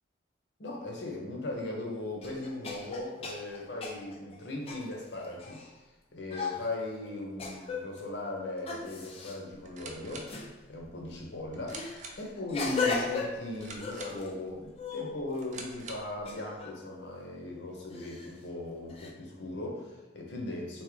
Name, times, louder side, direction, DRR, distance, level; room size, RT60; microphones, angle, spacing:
voice 1, 0.6-5.6 6.1-10.3 10.7-11.9 12.2-20.8, left 2 dB, 65° left, -1 dB, 0.8 m, -38 dB
sound 1, 1.5-1.6 2.2-5.7 6.3-6.7 7.4-8.0 8.7-9.4 10.3-10.5 11.7-14.3 14.7-15.6 16.3-16.8 17.9-18.4 18.9-19.1, left 4 dB, 30° left, 0.3 m, -36 dB
sound 2, 9.5-16.2, right 3 dB, 40° right, 0.4 m, -48 dB
3.5 x 2.8 x 3.2 m, 1.1 s
head